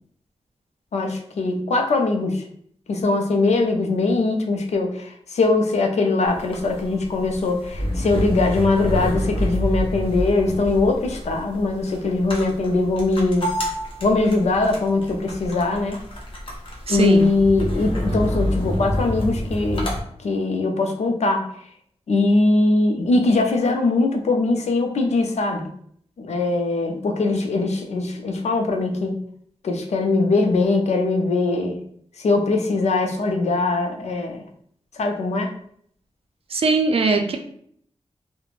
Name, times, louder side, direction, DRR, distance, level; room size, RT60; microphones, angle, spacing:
voice 1, 0.9-2.4 2.9-13.5 14.0-16.0 16.9-19.9 20.2-21.5 22.1-25.7 26.2-29.2 29.6-31.8 32.2-34.4 35.0-35.6, left 3 dB, 85° left, 4 dB, 0.4 m, -21 dB
sound 1, 6.3-20.0, equal, 50° left, 0.8 m, -28 dB
voice 2, 16.9-17.3 36.5-37.4, right 4 dB, 60° right, 5 dB, 0.4 m, -20 dB
2.4 x 2.1 x 3.1 m, 0.64 s
wide cardioid pair, 100°, 11 cm